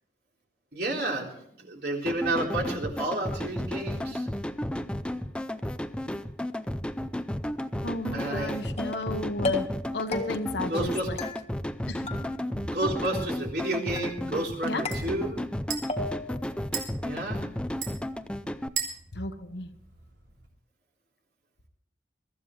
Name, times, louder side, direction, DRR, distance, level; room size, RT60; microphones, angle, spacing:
voice 1, 0.7-4.3 8.1-8.6 10.7-11.1 12.6-15.4 17.0-17.5, right 1 dB, 55° right, -1 dB, 3.7 m, -31 dB
sound 1, 2.1-18.7, left 1 dB, 5° left, 0.5 m, -33 dB
voice 2, 7.8-11.2 11.9-12.1 14.6-14.8 19.1-19.7, left 1 dB, 65° left, 7 dB, 1.2 m, -34 dB
sound 2, 8.8-9.1 9.4-9.9 10.1-10.6 11.2-11.8 12.1-12.7 13.0-13.6 14.0-14.5 14.9-15.6 15.9-16.4, left 3 dB, 35° left, 1.4 m, -34 dB
sound 3, 12.7-20.5, right 6 dB, 75° right, 3.5 m, -41 dB
23.0 x 14.0 x 3.2 m, 0.68 s
head